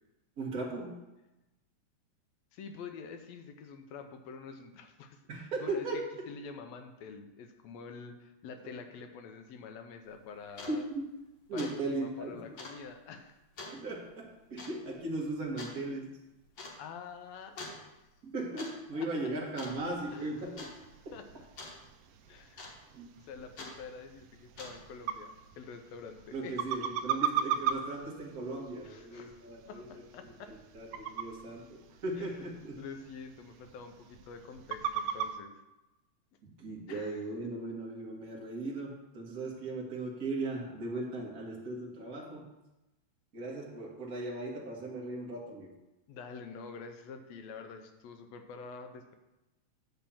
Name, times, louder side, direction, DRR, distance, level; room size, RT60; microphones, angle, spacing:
voice 1, 0.4-1.0 5.3-6.0 10.7-11.0 11.5-12.4 13.7-16.1 18.2-20.7 22.9-23.1 26.3-29.8 30.2-32.8 36.4-42.5 43.3-45.7, right 2 dB, 40° right, -2 dB, 1.5 m, -37 dB
voice 2, 2.5-10.9 11.5-13.4 16.8-18.0 18.9-19.1 20.1-20.5 21.1-21.3 22.3-22.6 23.2-26.8 28.8-30.6 31.0-31.2 32.2-32.5 32.8-35.6 36.9-37.3 46.1-49.1, left 5 dB, 75° left, 6 dB, 1.8 m, -47 dB
sound 1, 10.1-10.2 10.5-10.8 11.1-11.3 11.6-11.8 12.0-12.1 12.6-12.8 13.6-13.8 14.6-14.8 15.6-15.8 16.6-16.8 17.6-17.8 18.4-18.7 19.0-19.3 19.6-20.1 20.6-20.7 21.6-21.8 22.6-23.0 23.6-23.8 24.4-24.9, left 2 dB, 50° left, 1.7 m, -45 dB
sound 2, 19.7-35.4, right 8 dB, 80° right, 1.5 m, -39 dB
10.0 x 3.4 x 7.0 m, 0.99 s
omnidirectional pair, 3.3 m